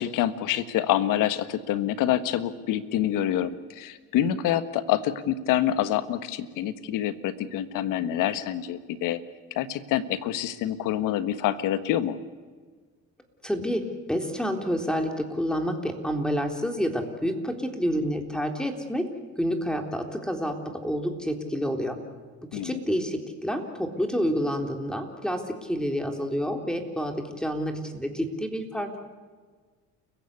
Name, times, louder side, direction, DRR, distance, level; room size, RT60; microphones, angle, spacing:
voice 1, 0.0-9.2 9.5-12.1 22.5-22.8, left 11 dB, 75° left, 12 dB, 1.6 m, -26 dB
voice 2, 13.4-13.8 14.1-19.0 19.4-22.0 22.5-29.0, equal, ahead, 4 dB, 3.7 m, -28 dB
29.5 x 16.0 x 8.4 m, 1.5 s
supercardioid pair, 90°, 33 cm